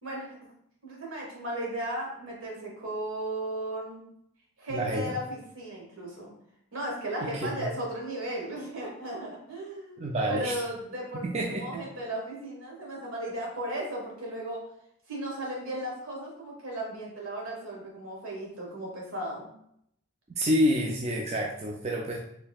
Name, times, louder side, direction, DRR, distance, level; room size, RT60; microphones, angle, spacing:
voice 1, 0.0-0.4 0.8-4.0 4.6-6.3 6.7-10.0 10.3-11.2 11.5-14.6 15.1-19.5, right 1 dB, 80° right, -2 dB, 1.4 m, -35 dB
voice 2, 4.7-5.1 7.2-7.7 10.0-10.6 11.3-11.8 20.4-22.2, equal, 30° right, -1 dB, 0.4 m, -28 dB
4.4 x 3.2 x 2.3 m, 0.73 s
head